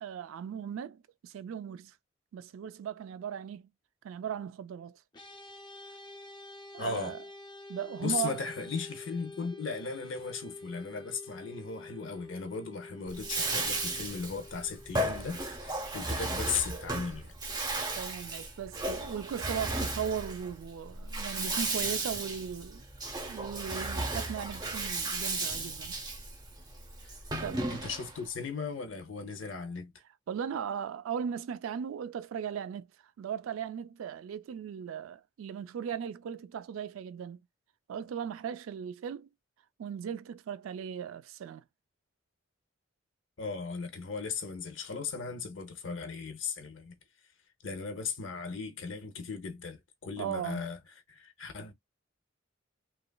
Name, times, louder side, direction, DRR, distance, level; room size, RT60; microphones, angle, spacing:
voice 1, 0.0-1.9 2.3-3.7 4.0-5.0 6.7-7.2 7.7-8.4 18.0-22.8 23.2-26.0 27.4-27.7 30.3-32.9 33.2-37.4 37.9-39.3 39.8-41.6 50.2-50.6, right 8 dB, 80° right, 0.3 m, -37 dB
sound 1, 5.1-16.6, left 2 dB, 20° left, 0.5 m, -49 dB
voice 2, 6.8-7.2 8.0-17.3 27.0-27.1 27.7-29.9 43.4-46.9 47.6-50.8 51.1-51.7, left 5 dB, 70° left, 0.6 m, -37 dB
Bathtub (filling or washing), 13.1-28.2, right 2 dB, 20° right, 0.7 m, -35 dB
2.9 x 2.3 x 2.2 m
head